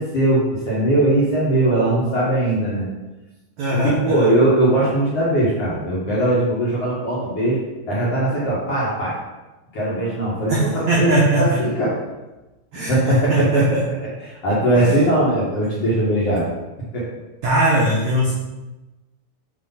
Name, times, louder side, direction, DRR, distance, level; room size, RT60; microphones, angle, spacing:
voice 1, 0.0-2.9 3.7-7.6 7.9-9.2 9.7-12.0 12.9-16.5 16.9-17.1, right 1 dB, 50° left, -8 dB, 1.9 m, -20 dB
voice 2, 3.6-4.3 10.5-11.6 12.7-13.8 14.7-15.1 17.4-18.3, right 1 dB, 80° right, -4 dB, 1.6 m, -20 dB
7.7 x 3.1 x 5.5 m, 1.1 s
omnidirectional pair, 4.7 m